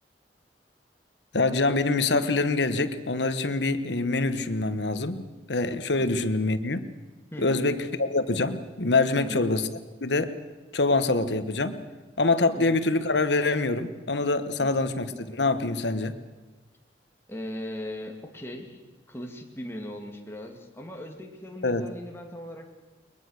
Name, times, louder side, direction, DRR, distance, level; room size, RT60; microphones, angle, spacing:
voice 1, 1.3-6.9 7.4-9.7 10.0-10.3 10.7-11.8 12.2-16.1 21.6-21.9, left 3 dB, 75° left, 11 dB, 1.3 m, -25 dB
voice 2, 7.3-7.6 9.2-9.4 12.6-12.8 14.6-14.7 17.3-18.8 19.1-22.8, left 1 dB, 15° left, 2 dB, 2.3 m, -38 dB
21.5 x 21.5 x 6.5 m, 1.3 s
head